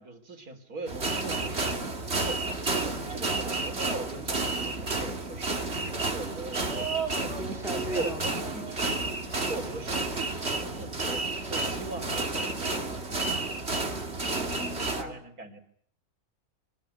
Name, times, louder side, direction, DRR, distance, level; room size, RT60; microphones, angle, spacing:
voice 1, 0.0-6.9 7.2-9.0 9.5-11.2 11.5-13.6 15.0-15.6, right 3 dB, 75° right, 7 dB, 3.8 m, -41 dB
sound 1, 0.9-15.0, right 3 dB, 45° right, 3.0 m, -31 dB
voice 2, 7.4-8.6 14.2-15.1, right 1 dB, ahead, 3 dB, 3.7 m, -37 dB
25.0 x 20.5 x 9.8 m, 0.64 s
omnidirectional pair, 1.6 m